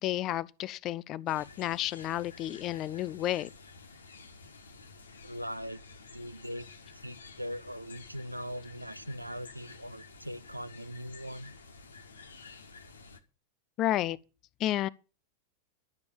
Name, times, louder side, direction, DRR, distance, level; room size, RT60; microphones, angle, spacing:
voice 1, 0.0-3.5 13.8-14.2 14.6-14.9, left 13 dB, 35° left, 0.6 m, -31 dB
sound 1, 1.3-13.2, left 4 dB, 70° left, 1.5 m, -51 dB
voice 2, 5.2-5.8 6.1-6.7 6.9-11.5, equal, 90° right, 0.6 m, -40 dB
12.0 x 7.0 x 9.1 m
figure-of-eight pair, 90°, 0 cm